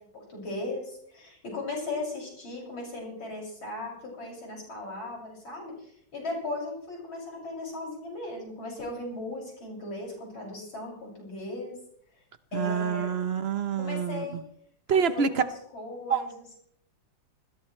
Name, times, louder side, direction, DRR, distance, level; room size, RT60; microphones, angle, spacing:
voice 1, 0.0-11.8 12.5-13.1 13.8-14.4 14.9-16.5, left 2 dB, 85° left, -3 dB, 7.6 m, -37 dB
voice 2, 12.5-14.4 14.9-15.4 16.1-16.2, right 6 dB, 45° right, 11 dB, 0.9 m, -27 dB
20.5 x 16.5 x 3.3 m, 0.70 s
omnidirectional pair, 2.1 m